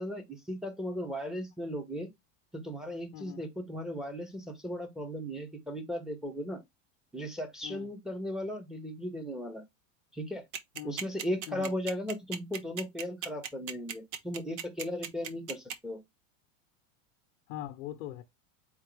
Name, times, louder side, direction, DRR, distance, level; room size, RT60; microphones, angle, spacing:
voice 1, 0.0-2.1 2.5-6.6 7.1-9.6 10.1-10.4 10.8-16.0, equal, ahead, 1.0 m, -36 dB
sound 1, 10.5-15.7, right 8 dB, 60° right, 1.0 m, -36 dB
voice 2, 17.5-18.2, left 13 dB, 75° left, 0.8 m, -41 dB
4.4 x 3.6 x 3.2 m
supercardioid pair, 145°, 41 cm